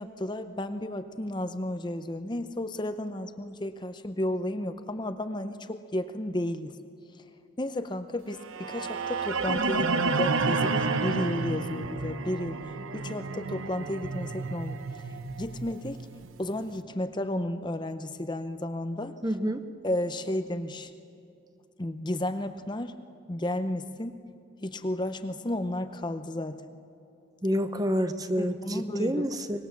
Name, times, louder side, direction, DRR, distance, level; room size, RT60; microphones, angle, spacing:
voice 1, 0.0-6.8 7.2-7.3 7.6-15.1 15.4-16.1 16.4-19.1 19.8-20.9 21.8-22.9 23.3-24.2 24.6-26.6 28.4-29.2, left 1 dB, 20° left, 9 dB, 0.7 m, -33 dB
sound 1, 8.4-16.5, right 3 dB, 90° right, 1.0 m, -30 dB
voice 2, 19.2-19.7 27.4-29.7, equal, 20° right, 10 dB, 0.8 m, -28 dB
24.5 x 21.0 x 7.3 m, 2.8 s
head